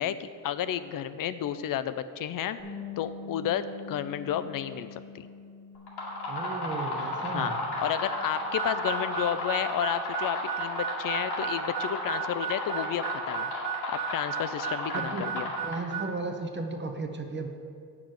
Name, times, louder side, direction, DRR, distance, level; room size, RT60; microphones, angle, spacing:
voice 1, 0.0-2.6 3.0-5.3 7.3-7.5 7.8-13.5 13.9-15.5, left 10 dB, 60° left, 12 dB, 0.5 m, -31 dB
Bass guitar, 2.6-8.8, left 5 dB, 10° left, 1.2 m, -45 dB
sound 1, 5.8-16.1, left 1 dB, 85° left, 2.2 m, -34 dB
voice 2, 6.3-7.6 14.9-15.3 15.6-17.5, right 3 dB, 30° right, 4 dB, 0.7 m, -35 dB
Harmonica, 8.5-16.1, right 10 dB, 75° right, 0.7 m, -35 dB
8.6 x 6.0 x 6.5 m, 2.3 s
cardioid pair, 145°, 39 cm